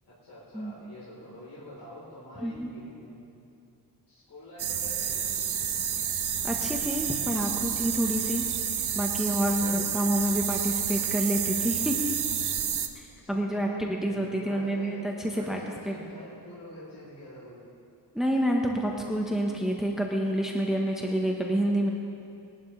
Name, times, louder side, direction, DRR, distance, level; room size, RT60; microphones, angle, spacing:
voice 1, 0.0-3.3 4.1-5.4 13.2-15.0 15.3-17.6, left 1 dB, 85° left, -9 dB, 4.0 m, -46 dB
sound 1, 4.6-12.9, right 8 dB, 75° right, 0.9 m, -30 dB
voice 2, 6.4-8.4 8.8-11.9 12.9-15.6 15.9-16.0 18.1-21.9, equal, ahead, 0 dB, 1.2 m, -28 dB
21.5 x 11.5 x 3.3 m, 2.6 s
cardioid pair, 80°, 39 cm